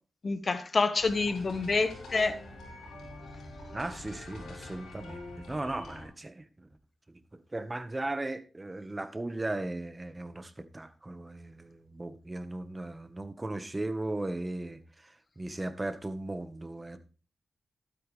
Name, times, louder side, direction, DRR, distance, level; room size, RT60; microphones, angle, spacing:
voice 1, 0.2-2.3, left 3 dB, 50° left, 11 dB, 1.3 m, -27 dB
sound 1, 1.0-6.1, left 2 dB, 90° left, 4.5 m, -45 dB
voice 2, 3.7-6.7 7.1-7.2 7.5-17.0, right 2 dB, 25° right, 11 dB, 1.3 m, -37 dB
12.0 x 9.0 x 3.3 m, 0.35 s
cardioid pair, 50°, 0 cm